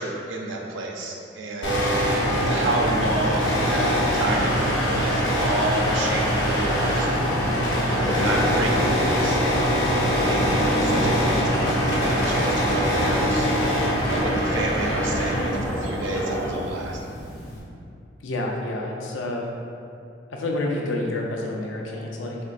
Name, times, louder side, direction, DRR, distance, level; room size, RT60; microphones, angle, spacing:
voice 1, 0.0-1.8 2.4-7.3 7.9-13.5 14.1-17.0, right 2 dB, 80° right, 0 dB, 0.5 m, -30 dB
sound 1, 1.6-17.6, equal, 60° left, 1.0 m, -23 dB
sound 2, 7.9-16.6, equal, 15° left, 0.5 m, -30 dB
voice 2, 18.2-19.5 20.3-22.4, left 2 dB, 85° left, -1 dB, 0.6 m, -28 dB
4.4 x 3.7 x 2.5 m, 2.6 s
head